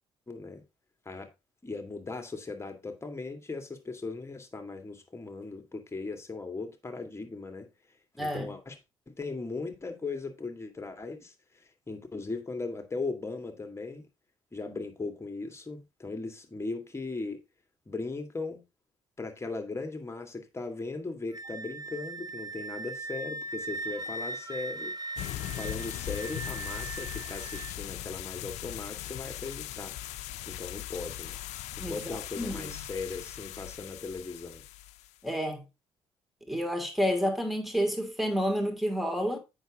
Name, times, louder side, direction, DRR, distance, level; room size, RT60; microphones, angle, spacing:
voice 1, 0.3-0.6 1.1-1.3 1.6-7.7 8.2-8.8 9.1-11.3 11.9-14.1 14.5-17.4 17.9-18.6 19.2-24.9 25.5-30.0 30.5-31.4 31.8-34.6, left 3 dB, 20° left, 2.1 m, -38 dB
voice 2, 8.2-8.5 31.8-32.8 35.2-35.6 36.5-39.4, equal, ahead, 2.5 m, -30 dB
Wind instrument woodwind instrument, 21.3-27.7, right 2 dB, 35° right, 1.2 m, -39 dB
sound 1, 25.2-35.1, left 14 dB, 70° left, 0.6 m, -39 dB
7.9 x 6.2 x 3.6 m
hypercardioid pair, 55°, 12 cm